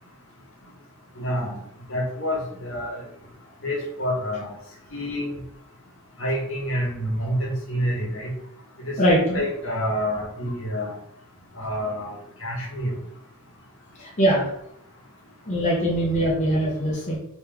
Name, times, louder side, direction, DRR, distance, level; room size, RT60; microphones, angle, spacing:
voice 1, 1.2-1.6 1.9-2.9 3.6-4.5 4.9-5.3 6.2-8.3 8.8-10.9 11.6-12.9, equal, 65° left, -1 dB, 1.1 m, -28 dB
voice 2, 9.0-9.4 14.0-14.5 15.5-17.2, equal, 35° left, -4 dB, 0.8 m, -22 dB
3.6 x 3.0 x 3.3 m, 0.74 s
head